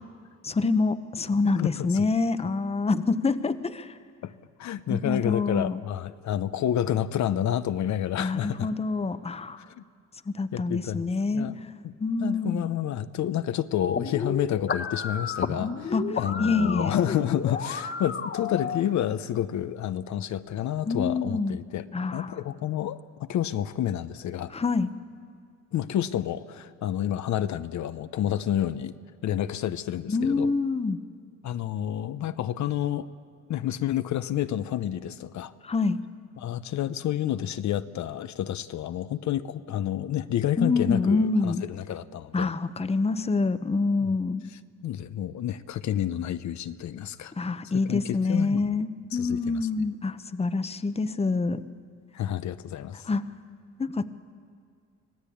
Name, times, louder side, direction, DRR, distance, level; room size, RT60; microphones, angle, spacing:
voice 1, 0.4-4.0 4.9-5.8 8.2-9.6 10.3-11.5 12.0-12.7 15.9-16.0 16.4-17.2 20.9-21.6 21.9-22.4 24.5-24.9 30.1-31.0 35.6-36.0 40.6-41.6 42.3-44.4 47.3-51.6 53.1-53.2 53.8-54.1, left 3 dB, 20° left, 12 dB, 0.9 m, -26 dB
voice 2, 1.6-2.0 4.2-4.3 4.6-8.7 9.7-9.8 10.5-11.0 11.3-11.6 11.8-11.9 12.2-21.8 22.1-24.5 25.7-28.9 29.2-30.6 31.4-33.1 33.5-35.5 36.4-42.5 44.0-44.2 44.8-47.3 47.9-48.8 49.1-49.6 52.1-53.1, left 11 dB, 70° left, 12 dB, 0.8 m, -29 dB
sound 1, 13.8-18.8, left 5 dB, 40° left, 1.3 m, -32 dB
25.0 x 17.0 x 8.6 m, 2.1 s
cardioid pair, 90°, 30 cm